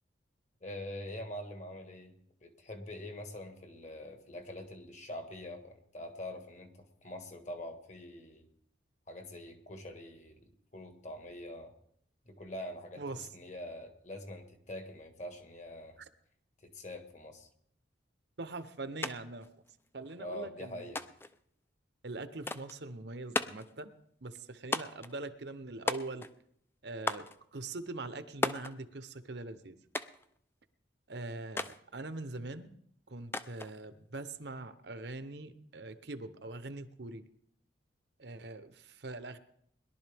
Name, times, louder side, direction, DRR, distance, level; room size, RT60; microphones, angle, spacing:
voice 1, 0.6-2.1 2.4-8.5 9.1-11.7 12.2-16.0 16.6-17.5 20.2-21.0, left 1 dB, 40° left, 6 dB, 1.5 m, -44 dB
voice 2, 13.0-13.3 18.4-19.5 19.9-20.9 22.0-23.9 24.2-26.3 26.8-29.8 31.1-32.7 33.1-37.2 38.2-39.4, right 2 dB, 60° right, 11 dB, 0.8 m, -42 dB
sound 1, 19.0-19.2 19.4-20.2 21.0-21.4 22.5-22.8 23.3-23.7 24.7-25.1 25.9-26.4 27.1-27.4 28.4-28.8 29.9-30.3 31.6-31.8 33.3-33.7, left 2 dB, 10° left, 0.4 m, -35 dB
21.5 x 11.5 x 3.5 m, 0.69 s
head